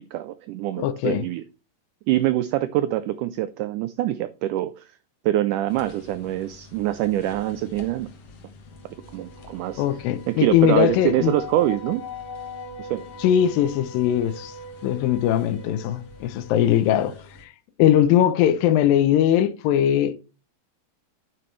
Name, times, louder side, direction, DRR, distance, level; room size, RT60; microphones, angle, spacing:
voice 1, 0.1-1.4 2.1-4.9 5.3-8.1 9.1-9.8 10.3-12.1 12.8-13.0, right 14 dB, 90° right, 1.8 m, -24 dB
voice 2, 0.8-1.2 9.8-11.3 13.2-14.5 14.8-17.1 17.4-17.5 17.8-20.2, left 11 dB, 80° left, 2.3 m, -20 dB
sound 1, 5.7-17.4, left 2 dB, 55° left, 2.0 m, -41 dB
9.9 x 7.7 x 3.2 m
omnidirectional pair, 4.2 m